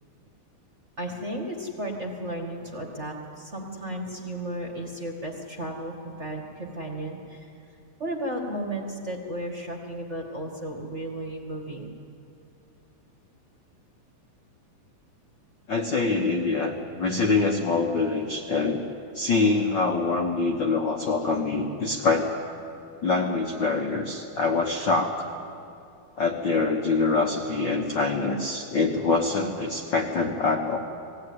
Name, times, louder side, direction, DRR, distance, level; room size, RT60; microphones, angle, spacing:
voice 1, 1.0-7.5 8.0-11.9, right 1 dB, 30° right, 1 dB, 1.5 m, -34 dB
voice 2, 15.7-18.8 19.1-22.3 23.0-25.3 26.2-30.8, left 3 dB, 85° left, 2 dB, 1.0 m, -25 dB
21.0 x 16.5 x 9.6 m, 2.6 s
omnidirectional pair, 4.0 m